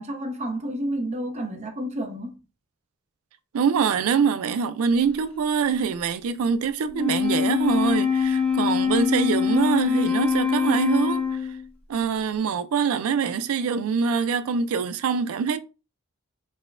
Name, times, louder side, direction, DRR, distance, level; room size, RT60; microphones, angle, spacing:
voice 1, 0.0-2.4, right 1 dB, 35° right, 0.7 m, -30 dB
voice 2, 3.5-11.5 11.9-15.6, right 6 dB, 75° right, 0.4 m, -24 dB
Wind instrument woodwind instrument, 6.9-11.7, left 6 dB, 10° left, 0.8 m, -23 dB
4.1 x 2.2 x 2.4 m
head